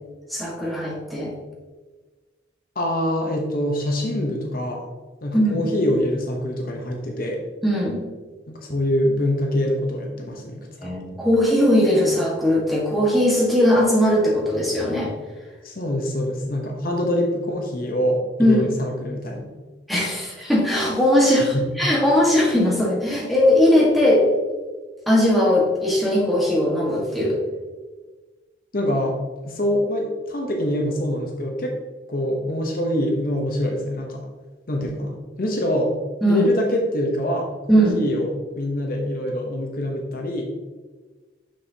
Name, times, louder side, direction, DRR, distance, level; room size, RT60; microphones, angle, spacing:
voice 1, 0.3-1.3 5.3-5.6 7.6-8.0 10.8-15.1 18.4-18.7 19.9-24.3 25.1-27.4 36.2-36.5 37.7-38.0, left 1 dB, ahead, -4 dB, 1.4 m, -19 dB
voice 2, 2.8-4.8 5.2-7.4 8.5-11.0 15.6-19.5 21.5-21.7 28.7-29.2 29.4-31.7 32.1-34.2 34.7-35.9 36.3-40.4, equal, 50° left, 1 dB, 0.8 m, -25 dB
6.2 x 6.2 x 2.8 m, 1.3 s
head